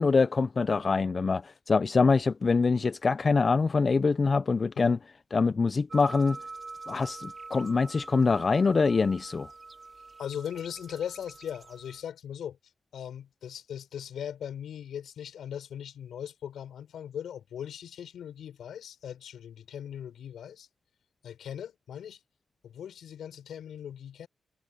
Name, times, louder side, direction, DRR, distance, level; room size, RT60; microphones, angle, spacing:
voice 1, 0.0-5.0 5.3-6.4 6.9-9.5, left 4 dB, 50° left, 0.7 m, -24 dB
sound 1, 5.9-12.0, right 3 dB, 40° right, 5.5 m, -45 dB
voice 2, 10.2-12.6 12.9-20.7 21.2-22.2 22.6-24.3, left 9 dB, 75° left, 4.7 m, -39 dB
supercardioid pair, 40°, 0 cm